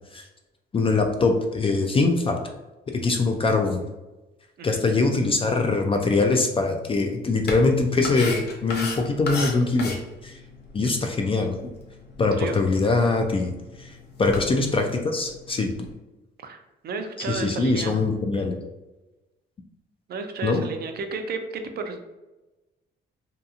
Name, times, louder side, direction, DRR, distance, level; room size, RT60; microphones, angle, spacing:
voice 1, 0.7-2.4 2.9-3.8 4.6-10.4 10.7-11.6 12.2-13.5 13.8-13.9 14.2-15.7 17.3-18.5 20.4-20.6, left 3 dB, 30° left, 4 dB, 0.3 m, -23 dB
sound 1, 7.4-15.9, left 2 dB, 55° left, 0.7 m, -37 dB
voice 2, 16.4-18.0 20.1-22.1, right 4 dB, 55° right, 6 dB, 0.4 m, -32 dB
2.8 x 2.2 x 2.5 m, 1.1 s
cardioid pair, 90°, 20 cm